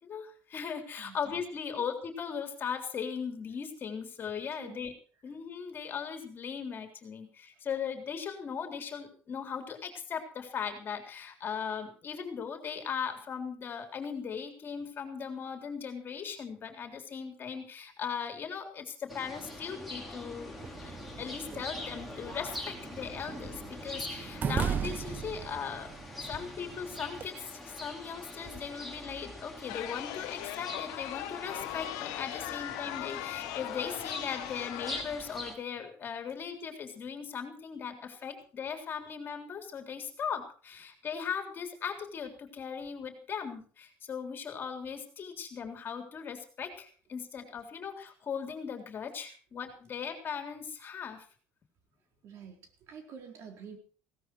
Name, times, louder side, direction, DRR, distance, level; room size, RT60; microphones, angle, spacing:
voice 1, 0.0-4.9 5.2-20.9 21.2-51.3, left 7 dB, 40° left, 5 dB, 3.5 m, -38 dB
voice 2, 4.6-4.9 26.3-26.5 38.3-38.4 52.2-53.8, right 6 dB, 55° right, 4 dB, 4.1 m, -48 dB
sound 1, 19.1-35.5, left 1 dB, ahead, 4.6 m, -44 dB
sound 2, 20.6-27.3, right 7 dB, 35° right, 0.7 m, -38 dB
Chatter, 29.7-35.0, left 16 dB, 85° left, 1.2 m, -39 dB
17.0 x 13.5 x 4.7 m, 0.41 s
cardioid pair, 110°, 5 cm